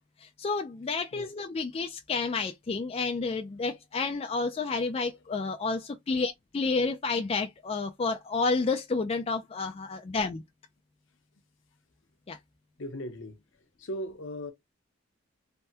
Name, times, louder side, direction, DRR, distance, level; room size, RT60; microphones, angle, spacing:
voice 1, 0.2-10.4 12.3-12.4, left 4 dB, 30° left, 0.3 m, -30 dB
voice 2, 12.8-13.4 13.8-14.5, equal, 65° left, 0.8 m, -38 dB
3.3 x 2.2 x 2.7 m
head